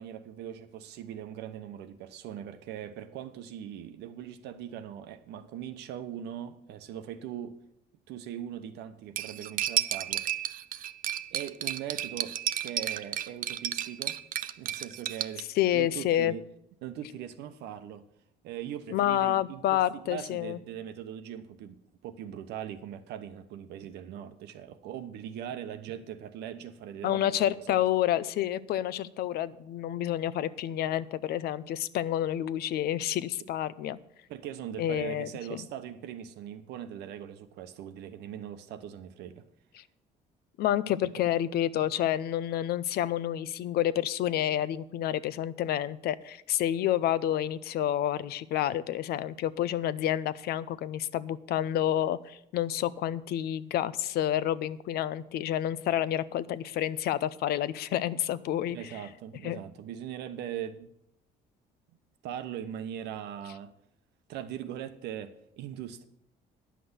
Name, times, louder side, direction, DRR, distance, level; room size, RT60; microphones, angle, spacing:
voice 1, 0.0-7.6 8.1-10.5 11.3-14.2 14.6-16.4 16.8-18.1 18.4-27.8 34.3-39.4 58.7-60.9 62.2-63.7 64.3-66.0, right 10 dB, 80° right, 1.0 m, -40 dB
Cutlery silverware, 9.2-15.4, right 11 dB, 55° right, 0.5 m, -32 dB
voice 2, 15.6-16.3 18.9-20.6 27.0-34.0 34.8-35.3 40.6-58.9 59.4-59.6, left 12 dB, 70° left, 0.6 m, -29 dB
10.0 x 6.0 x 7.9 m
cardioid pair, 110°, 17 cm